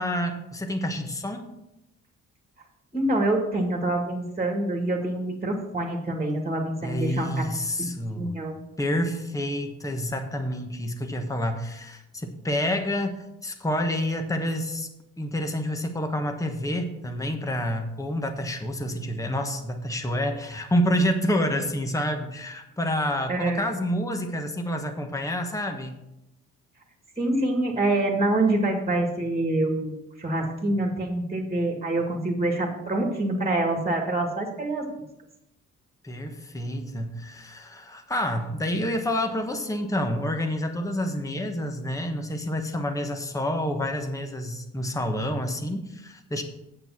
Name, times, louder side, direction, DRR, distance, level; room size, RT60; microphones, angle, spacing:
voice 1, 0.0-1.5 6.8-8.4 8.8-14.9 15.2-26.0 36.0-46.4, equal, 10° left, 5 dB, 1.2 m, -28 dB
voice 2, 2.9-7.4 7.8-8.5 23.3-23.7 27.2-34.9, right 2 dB, 20° right, 2 dB, 2.0 m, -26 dB
8.3 x 7.0 x 5.8 m, 0.89 s
cardioid pair, 90°, 30 cm